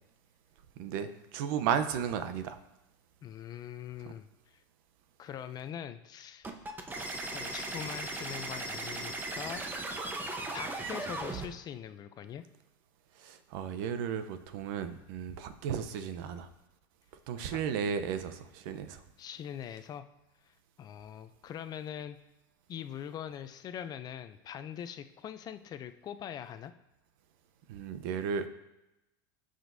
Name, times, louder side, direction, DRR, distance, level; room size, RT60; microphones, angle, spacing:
voice 1, 0.8-2.6 13.2-16.5 17.3-19.0 27.7-28.5, right 7 dB, 65° right, 10 dB, 0.8 m, -34 dB
voice 2, 3.2-4.6 5.2-6.5 7.3-9.6 10.5-12.4 17.5-17.6 19.2-20.1 20.4-22.2 22.7-26.7, left 9 dB, 35° left, 11 dB, 0.5 m, -42 dB
sound 1, 6.4-11.5, right 2 dB, 15° right, 1.0 m, -37 dB
15.0 x 5.1 x 2.7 m, 0.94 s
supercardioid pair, 120°, 12 cm